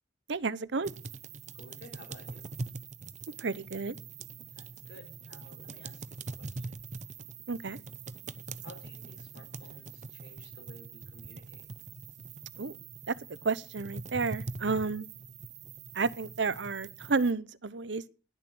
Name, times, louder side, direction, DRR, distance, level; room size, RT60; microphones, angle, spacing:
voice 1, 0.3-0.9 3.4-4.0 7.5-7.8 12.6-12.8 13.1-13.2 13.4-15.1 15.9-18.1, right 4 dB, 70° right, 0.8 m, -31 dB
sound 1, 0.8-17.3, right 4 dB, 40° right, 0.7 m, -43 dB
voice 2, 1.5-2.5 4.5-6.8 8.6-11.7 14.6-14.8, left 1 dB, 60° left, 5.3 m, -54 dB
19.5 x 7.2 x 6.2 m
head